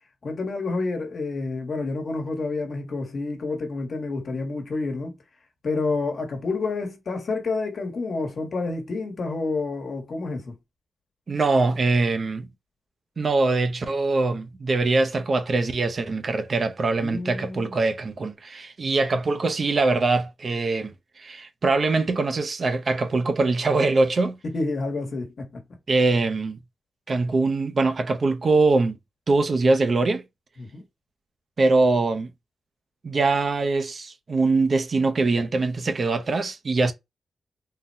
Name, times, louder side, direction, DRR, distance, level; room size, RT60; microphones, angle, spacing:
voice 1, 0.2-5.1 5.6-10.5 17.0-17.7 24.4-25.6 30.6-30.8, left 3 dB, 55° left, 1.1 m, -29 dB
voice 2, 11.3-12.5 13.2-24.4 25.9-26.6 27.1-29.0 29.3-30.2 31.6-32.3 33.0-36.9, right 3 dB, 45° right, 0.5 m, -23 dB
3.8 x 2.1 x 2.6 m
wide cardioid pair, 115°, 0 cm